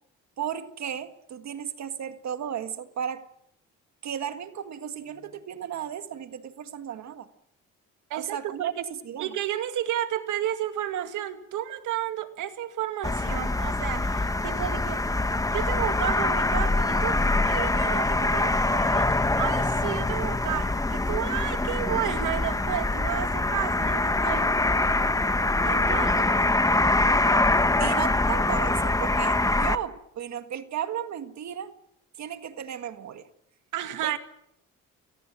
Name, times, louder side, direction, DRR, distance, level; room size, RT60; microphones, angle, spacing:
voice 1, 0.4-3.2 4.0-7.3 8.1-9.3 27.8-31.7 32.2-33.3 34.0-34.2, right 9 dB, 65° right, 1.8 m, -34 dB
voice 2, 8.1-8.7 9.2-15.0 15.5-24.5 25.6-26.3 33.7-34.2, right 11 dB, 85° right, 2.1 m, -32 dB
sound 1, 13.0-29.8, left 2 dB, 10° left, 1.1 m, -24 dB
29.0 x 23.0 x 6.3 m
cardioid pair, 90°, 30 cm